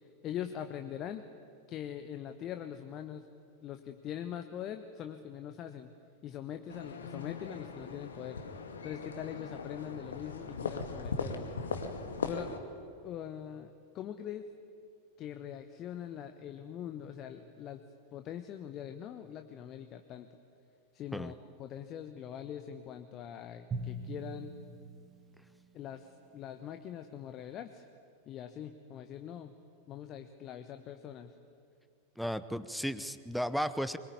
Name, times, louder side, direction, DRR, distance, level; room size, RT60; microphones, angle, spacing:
voice 1, 0.2-1.2 1.7-3.3 3.6-5.9 6.2-8.4 8.8-11.5 12.2-12.6 13.0-14.5 15.2-17.8 18.1-20.3 20.9-24.5 25.7-27.9 28.2-29.5 29.9-31.3, left 10 dB, 35° left, 8 dB, 1.1 m, -42 dB
sound 1, 6.7-12.6, left 4 dB, 70° left, 2.0 m, -39 dB
Drum, 23.7-26.1, right 2 dB, 20° right, 1.8 m, -42 dB
voice 2, 32.2-34.0, equal, ahead, 13 dB, 0.9 m, -34 dB
24.5 x 22.0 x 9.7 m, 2.5 s
figure-of-eight pair, 90°, 0 cm